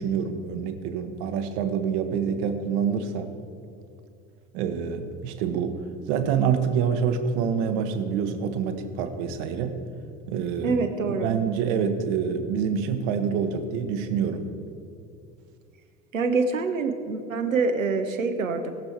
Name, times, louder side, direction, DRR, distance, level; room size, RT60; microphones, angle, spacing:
voice 1, 0.0-3.4 4.5-9.8 10.3-10.8 11.2-14.5, right 7 dB, 55° right, 7 dB, 1.2 m, -26 dB
voice 2, 10.6-11.3 16.1-18.7, right 4 dB, 80° right, 5 dB, 1.0 m, -25 dB
20.0 x 6.9 x 4.6 m, 2.6 s
figure-of-eight pair, 65°, 39 cm